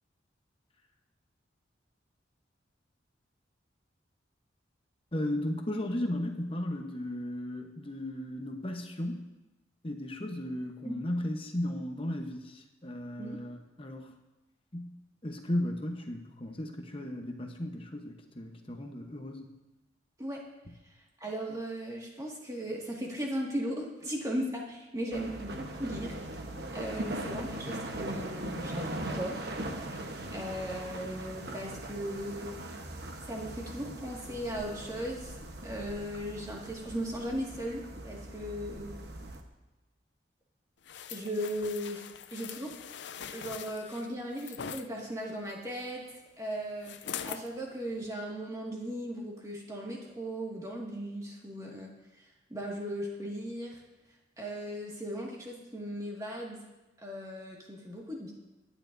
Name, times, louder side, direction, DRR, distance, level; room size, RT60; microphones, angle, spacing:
voice 1, 5.1-9.3 9.8-14.1 14.7-15.0 15.2-19.5, left 1 dB, 30° left, 4 dB, 1.0 m, -35 dB
voice 2, 21.2-26.2 26.7-29.5 29.8-32.5 33.3-35.4 35.6-38.9 41.1-42.0 42.3-42.8 43.3-46.0 46.4-47.0 47.2-53.8 54.4-56.6 57.0-58.3, equal, 20° right, -2 dB, 1.9 m, -37 dB
sound 1, 25.1-39.4, right 1 dB, 60° right, 1.1 m, -40 dB
sound 2, 40.9-44.9 46.8-47.5 48.0-48.1, left 8 dB, 70° left, 0.5 m, -42 dB
24.0 x 10.0 x 2.7 m, 1.1 s
head